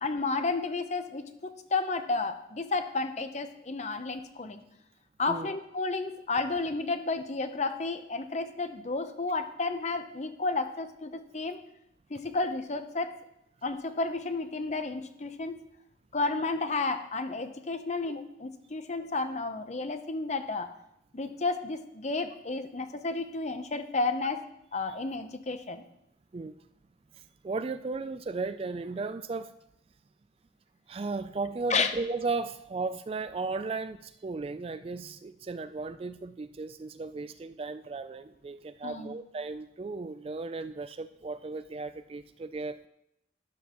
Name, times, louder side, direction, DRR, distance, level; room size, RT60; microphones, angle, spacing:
voice 1, 0.0-4.6 5.2-11.6 12.1-13.1 13.6-15.6 16.1-20.7 21.1-24.4 24.7-25.8 31.7-31.9 38.8-39.2, left 3 dB, 35° left, 9 dB, 0.7 m, -32 dB
voice 2, 27.2-29.5 30.9-42.9, right 3 dB, 30° right, 12 dB, 0.3 m, -35 dB
12.5 x 10.5 x 3.0 m, 0.80 s
head